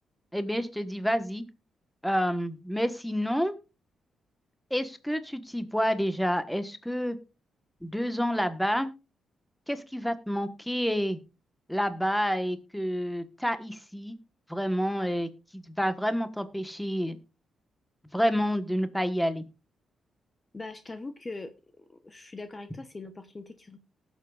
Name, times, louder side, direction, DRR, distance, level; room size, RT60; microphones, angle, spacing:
voice 1, 0.3-1.4 2.0-3.5 4.7-7.2 7.8-8.9 9.7-11.2 11.7-14.2 14.5-17.2 18.1-19.4, equal, 5° left, 10 dB, 1.3 m, -29 dB
voice 2, 20.5-21.5 21.8-23.8, left 3 dB, 25° left, 9 dB, 1.0 m, -41 dB
19.0 x 7.2 x 2.5 m, 0.29 s
cardioid pair, 75°, 0 cm